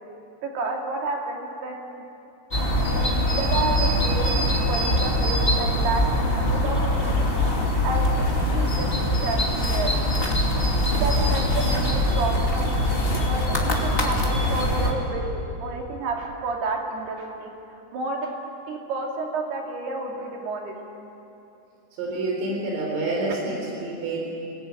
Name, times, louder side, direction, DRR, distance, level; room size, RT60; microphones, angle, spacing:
voice 1, 0.4-2.0 2.9-7.4 7.7-9.9 11.0-17.5 17.9-18.4 18.7-20.7, right 3 dB, 60° right, 1 dB, 4.4 m, -31 dB
sound 1, 2.5-14.9, left 1 dB, 20° left, 1.8 m, -23 dB
voice 2, 22.0-24.2, right 2 dB, 90° right, -1 dB, 6.5 m, -28 dB
28.5 x 19.0 x 9.1 m, 2.8 s
omnidirectional pair, 5.6 m